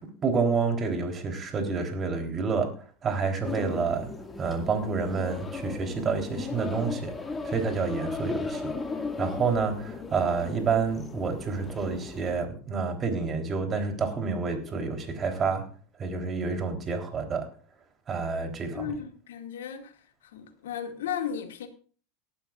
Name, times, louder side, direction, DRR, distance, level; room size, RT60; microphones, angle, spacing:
voice 1, 0.2-2.7 3.0-4.1 4.4-15.7 16.0-17.5 18.1-19.0, right 5 dB, 30° right, 3.6 m, -29 dB
sound 1, 3.4-12.5, left 4 dB, 20° left, 2.0 m, -37 dB
voice 2, 18.7-19.9 20.3-21.7, left 8 dB, 75° left, 2.2 m, -35 dB
19.0 x 12.5 x 2.5 m
hypercardioid pair, 90°, 0 cm